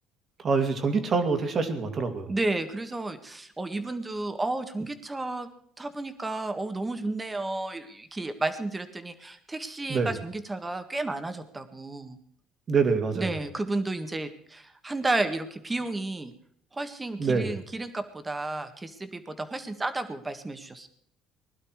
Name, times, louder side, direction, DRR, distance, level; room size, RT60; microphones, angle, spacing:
voice 1, 0.4-2.3 9.9-10.1 12.7-13.4 17.2-17.5, right 4 dB, 40° right, 7 dB, 2.4 m, -25 dB
voice 2, 2.3-5.5 5.8-12.2 13.1-16.3 16.7-20.9, right 2 dB, 15° right, 8 dB, 1.7 m, -32 dB
20.5 x 11.5 x 4.8 m, 0.63 s
cardioid pair, 110°, 0 cm